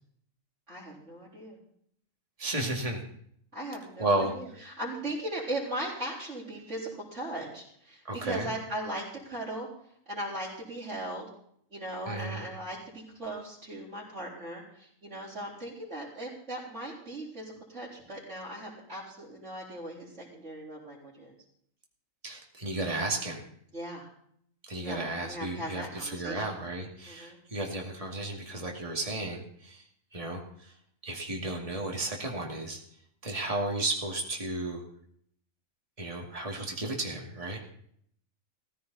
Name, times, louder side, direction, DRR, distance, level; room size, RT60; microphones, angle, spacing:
voice 1, 0.7-1.6 3.5-9.7 10.1-11.3 11.7-21.3 23.7-24.1 24.8-26.5 27.1-27.4, right 1 dB, 60° right, -9 dB, 4.9 m, -38 dB
voice 2, 2.4-3.0 4.0-4.3 8.0-8.5 12.1-12.4 22.2-23.5 24.7-29.8 30.1-30.7 31.0-32.8 33.2-34.8 36.0-37.6, right 2 dB, 25° right, 0 dB, 2.5 m, -33 dB
16.5 x 15.5 x 4.2 m, 0.65 s
omnidirectional pair, 1.4 m